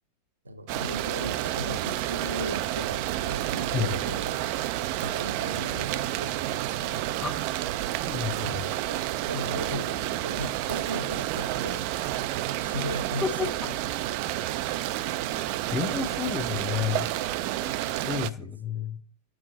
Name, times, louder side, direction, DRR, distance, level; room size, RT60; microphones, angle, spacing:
voice 1, 0.4-4.5 5.0-7.1 8.3-9.0 9.3-11.8 12.3-13.5 18.7-18.8, equal, 80° right, 10 dB, 0.7 m, -37 dB
sound 1, 0.7-18.3, right 14 dB, 45° right, 0.4 m, -30 dB
voice 2, 8.1-8.7 13.2-13.5 15.7-17.1 18.0-19.0, left 6 dB, 15° left, 10 dB, 0.7 m, -30 dB
7.7 x 6.3 x 4.0 m, 0.44 s
figure-of-eight pair, 90°, 0 cm